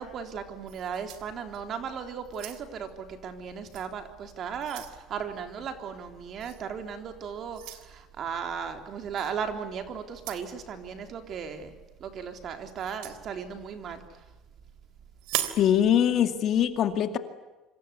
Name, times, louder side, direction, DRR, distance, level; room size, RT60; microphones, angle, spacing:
voice 1, 0.0-11.8 12.0-14.0, right 7 dB, 40° right, 6 dB, 3.6 m, -36 dB
sound 1, 0.7-1.8 2.2-2.9 3.7-3.9 4.3-5.0 6.4-6.6 7.5-7.9 9.2-9.3 10.1-10.5 12.8-13.2 15.2-15.7, right 13 dB, 80° right, 3.3 m, -37 dB
voice 2, 15.6-17.2, left 9 dB, 45° left, 8 dB, 2.2 m, -23 dB
27.5 x 25.5 x 8.4 m, 1.1 s
cardioid pair, 160°, 0 cm